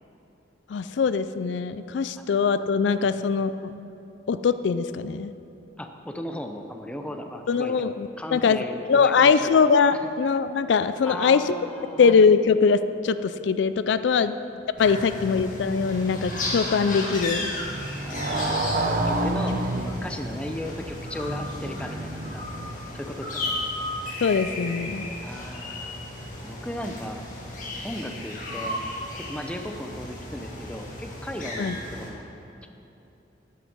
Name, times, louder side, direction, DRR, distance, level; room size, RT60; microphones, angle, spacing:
voice 1, 0.7-3.7 4.3-5.3 7.5-8.6 8.9-11.5 12.0-14.3 14.8-17.5 24.2-25.1 31.6-31.7, left 5 dB, 75° left, 13 dB, 0.4 m, -22 dB
voice 2, 5.8-7.9 8.2-9.6 11.0-12.1 14.1-14.3 14.9-15.0 18.0-18.7 19.1-22.5 22.9-23.5 25.2-25.9 26.4-27.2 27.8-28.8 29.2-32.3, left 1 dB, 5° left, 5 dB, 0.6 m, -36 dB
sound 1, 14.8-32.1, left 1 dB, 45° left, 1.9 m, -35 dB
Motorcycle, 15.1-23.1, right 2 dB, 45° right, 0.8 m, -31 dB
12.0 x 9.5 x 5.4 m, 2.9 s
head